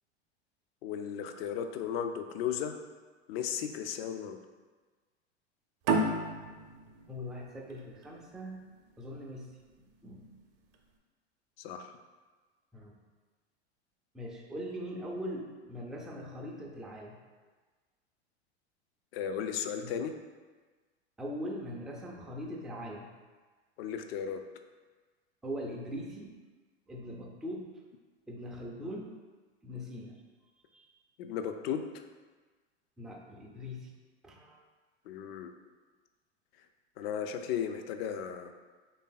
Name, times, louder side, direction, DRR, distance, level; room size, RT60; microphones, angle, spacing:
voice 1, 0.8-2.8 3.3-4.4 11.6-12.0 19.1-20.1 23.8-24.4 31.2-32.1 35.1-35.5 37.0-38.5, left 8 dB, 60° left, 7 dB, 0.5 m, -35 dB
sound 1, 5.8-9.1, right 2 dB, 45° right, 0.6 m, -32 dB
voice 2, 7.1-8.6 9.0-9.5 10.0-10.3 12.7-12.9 14.1-17.1 19.8-19.9 21.2-23.1 25.4-26.4 26.9-27.7 28.3-29.1 29.6-30.2 30.7-30.9 33.0-33.9 34.2-34.6, equal, ahead, -2 dB, 0.3 m, -41 dB
3.3 x 2.7 x 3.8 m, 1.3 s
hypercardioid pair, 95°, 34 cm